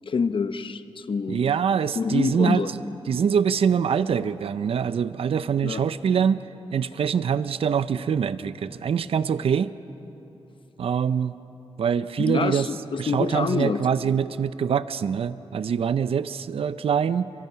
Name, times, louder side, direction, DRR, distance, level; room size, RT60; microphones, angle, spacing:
voice 1, 0.1-1.4 2.0-2.7 5.6-5.8 12.2-13.8, left 5 dB, 60° left, 11 dB, 1.0 m, -26 dB
voice 2, 1.3-2.8 3.1-6.4 6.7-9.7 10.8-11.3 11.8-12.7 13.0-17.3, right 7 dB, 75° right, 14 dB, 0.6 m, -24 dB
28.0 x 24.5 x 5.8 m, 3.0 s
cardioid pair, 65°, 10 cm